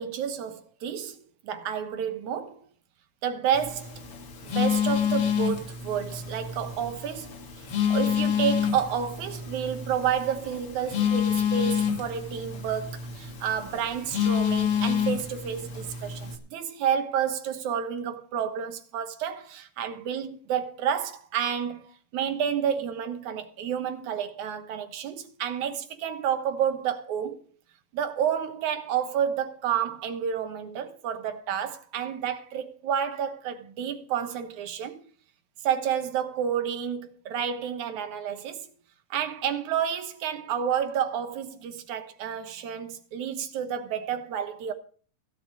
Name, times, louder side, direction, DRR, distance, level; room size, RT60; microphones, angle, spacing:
voice 1, 0.0-2.6 3.2-3.9 4.4-7.3 7.9-21.8 22.1-27.5 27.9-35.0 35.6-38.7 39.1-44.7, right 8 dB, 80° right, 2.7 m, -30 dB
Telephone, 3.5-16.4, left 8 dB, 55° left, 2.5 m, -28 dB
15.5 x 5.9 x 8.4 m
omnidirectional pair, 3.4 m